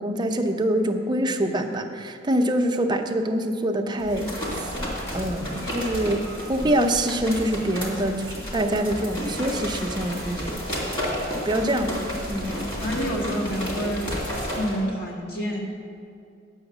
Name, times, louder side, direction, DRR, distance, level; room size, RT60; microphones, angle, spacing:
voice 1, 0.0-4.7 5.1-10.6 11.5-11.9 12.3-12.7, right 1 dB, 25° right, 4 dB, 0.6 m, -25 dB
sound 1, 4.0-14.8, equal, 25° left, 2.2 m, -31 dB
voice 2, 12.8-14.1 14.5-15.6, equal, 55° left, -3 dB, 1.9 m, -28 dB
8.7 x 6.3 x 7.1 m, 2.4 s
head